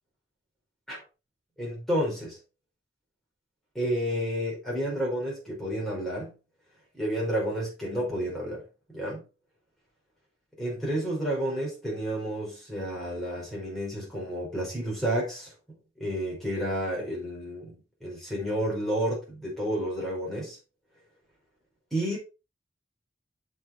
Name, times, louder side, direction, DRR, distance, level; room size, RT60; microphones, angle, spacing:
voice 1, 1.6-2.4 3.7-6.3 6.9-8.6 8.9-9.2 10.6-15.5 16.0-20.6 21.9-22.2, equal, ahead, 5.0 m, -30 dB
8.0 x 6.2 x 4.4 m
head